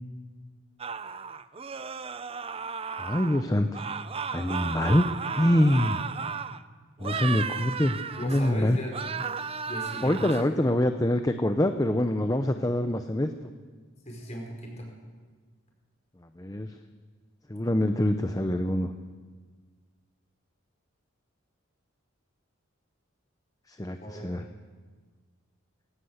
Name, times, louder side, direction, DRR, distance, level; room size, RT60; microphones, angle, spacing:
sound 1, 0.8-3.4 3.7-6.6 7.0-8.6 8.9-10.4, right 6 dB, 25° right, 0.6 m, -34 dB
voice 1, 2.9-3.8 4.3-5.1 5.3-6.0 7.0-8.8 10.0-13.3 16.4-16.8 17.5-18.9 23.7-24.5, left 1 dB, 15° left, 8 dB, 0.7 m, -25 dB
voice 2, 8.2-8.9 9.6-10.4 10.7-10.8 14.1-14.9 24.0-24.3, equal, 35° left, 0 dB, 5.6 m, -37 dB
20.5 x 18.5 x 8.0 m, 1.5 s
head